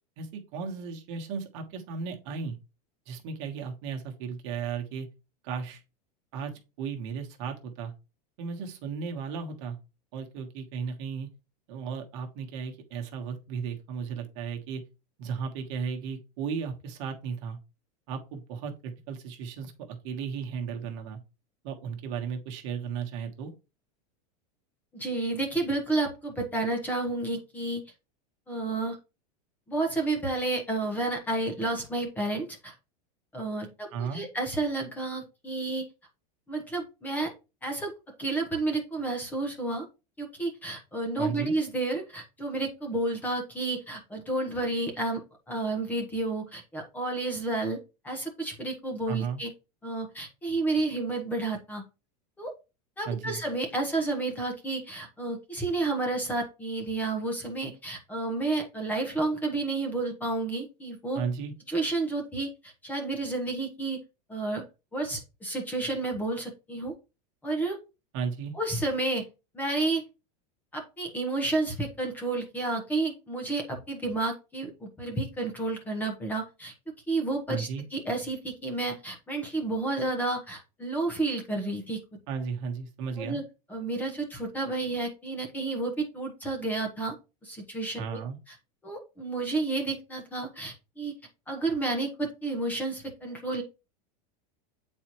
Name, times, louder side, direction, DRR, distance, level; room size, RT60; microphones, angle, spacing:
voice 1, 0.2-2.6 3.1-5.1 5.4-5.8 6.3-7.9 8.4-9.8 10.1-11.3 11.7-14.8 15.2-17.6 18.1-21.2 21.6-23.5 33.9-34.2 41.2-41.6 49.1-49.4 53.0-53.4 61.1-61.5 68.1-68.5 77.5-77.8 82.3-83.4 88.0-88.4, right 6 dB, 45° right, 2 dB, 1.3 m, -35 dB
voice 2, 24.9-27.8 28.5-29.0 29.7-32.7 33.3-35.8 36.5-37.3 37.6-37.9 38.2-39.9 40.2-45.2 45.5-47.8 48.0-49.5 49.8-51.8 52.4-52.5 53.0-61.2 61.7-64.0 64.3-64.6 64.9-66.9 67.4-67.8 68.5-69.2 69.5-70.0 70.7-76.7 77.1-82.0 83.2-83.4 83.7-87.2 87.4-88.2 88.8-91.1 91.5-93.6, right 2 dB, 10° left, 2 dB, 1.0 m, -31 dB
8.4 x 4.3 x 3.0 m, 0.29 s
supercardioid pair, 170°, 21 cm